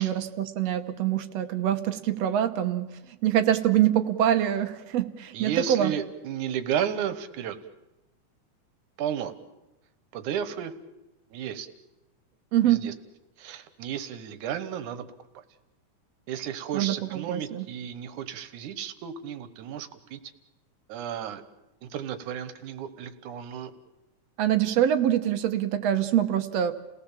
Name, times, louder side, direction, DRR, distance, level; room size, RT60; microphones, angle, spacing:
voice 1, 0.0-5.9 12.5-13.0 16.7-17.7 24.4-26.7, right 11 dB, 65° right, 9 dB, 1.9 m, -25 dB
voice 2, 5.3-7.6 9.0-9.3 10.1-10.7 11.3-11.7 12.6-12.9 13.4-15.1 16.3-20.2 20.9-21.4 21.8-23.7, right 9 dB, 85° right, 12 dB, 2.6 m, -33 dB
29.5 x 17.5 x 7.4 m, 0.99 s
omnidirectional pair, 3.5 m